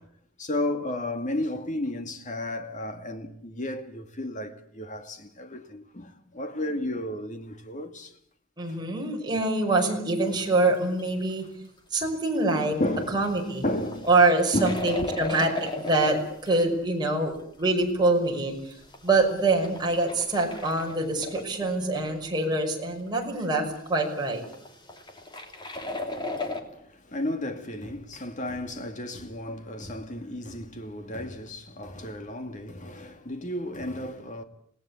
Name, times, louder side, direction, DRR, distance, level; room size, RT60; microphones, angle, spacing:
voice 1, 0.4-8.1 12.8-13.3 13.6-14.1 14.5-15.1 27.1-34.4, left 1 dB, 40° left, 2.3 m, -33 dB
voice 2, 8.6-11.5 11.9-12.8 13.1-13.6 14.1-18.7 19.0-24.4, right 2 dB, 20° right, 5.7 m, -25 dB
sound 1, 10.2-11.0 11.3-11.5 11.8-11.9 12.6-12.7 13.2-16.6 17.0-17.1 17.4-17.9 18.3-21.9 22.3-22.4 22.6-22.7 22.9-23.3 24.0-26.6, left 2 dB, 25° left, 2.9 m, -37 dB
27.5 x 18.5 x 8.5 m
head